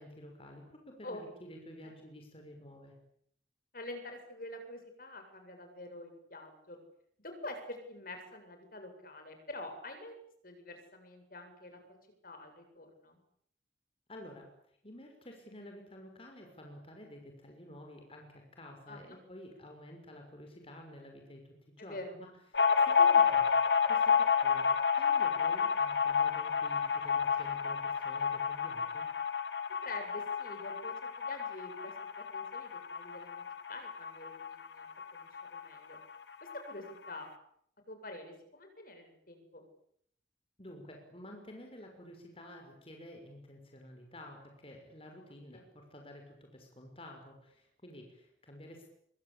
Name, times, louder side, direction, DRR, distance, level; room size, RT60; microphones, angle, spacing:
voice 1, 0.0-2.9 14.1-14.5 14.8-29.1 40.6-48.9, left 1 dB, 30° left, 2 dB, 6.1 m, -51 dB
voice 2, 3.7-6.8 7.2-10.2 10.4-11.8 12.2-13.2 18.9-19.2 21.8-22.1 29.8-33.4 33.7-34.9 35.1-36.0 36.4-37.3 37.9-39.6 45.5-45.7, left 2 dB, 55° left, 6 dB, 7.8 m, -46 dB
sound 1, 22.5-35.7 36.0-36.1 36.3-37.1, left 6 dB, 80° left, 2.3 m, -30 dB
28.0 x 24.5 x 8.6 m, 0.68 s
head